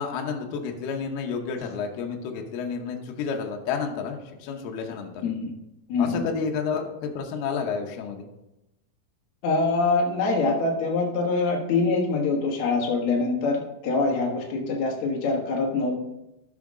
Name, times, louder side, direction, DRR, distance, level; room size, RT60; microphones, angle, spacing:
voice 1, 0.0-5.1 6.0-8.3, left 5 dB, 75° left, 2 dB, 2.8 m, -30 dB
voice 2, 5.2-5.5 5.9-6.2 9.4-15.9, left 3 dB, 55° left, 0 dB, 2.1 m, -24 dB
12.5 x 6.3 x 3.7 m, 0.91 s
omnidirectional pair, 4.9 m